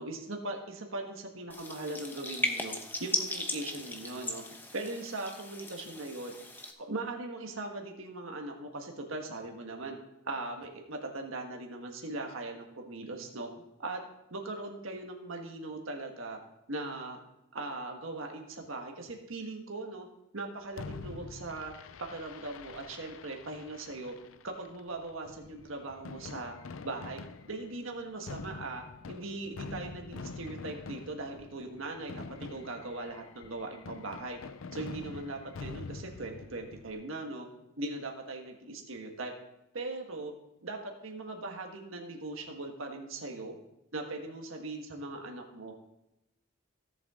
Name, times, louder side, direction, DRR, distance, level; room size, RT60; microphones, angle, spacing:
voice 1, 0.0-2.7 3.0-4.4 4.7-6.3 6.8-10.0 10.2-14.0 14.3-16.4 16.7-17.2 17.5-20.1 20.3-21.7 22.1-24.1 24.4-26.5 26.8-27.2 27.5-34.4 34.7-37.5 37.8-39.3 39.7-40.3 40.6-43.6 43.9-45.7, right 2 dB, 75° right, 2 dB, 1.5 m, -40 dB
sound 1, 1.5-6.7, left 2 dB, 10° left, 0.9 m, -37 dB
Fireworks, 20.8-36.9, left 4 dB, 75° left, 0.5 m, -46 dB
16.5 x 7.4 x 3.7 m, 0.88 s
head